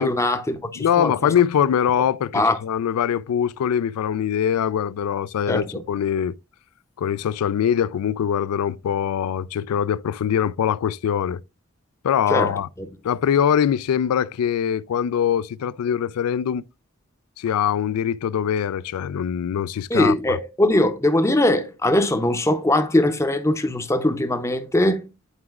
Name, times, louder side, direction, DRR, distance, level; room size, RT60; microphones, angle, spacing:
voice 1, 0.0-1.3 2.3-2.6 5.5-5.8 12.3-12.9 19.9-25.1, left 1 dB, 15° left, 0.6 m, -21 dB
voice 2, 0.8-6.3 7.0-11.4 12.0-12.7 13.0-16.6 17.4-20.4, left 8 dB, 90° left, 0.3 m, -23 dB
9.7 x 4.8 x 2.3 m
head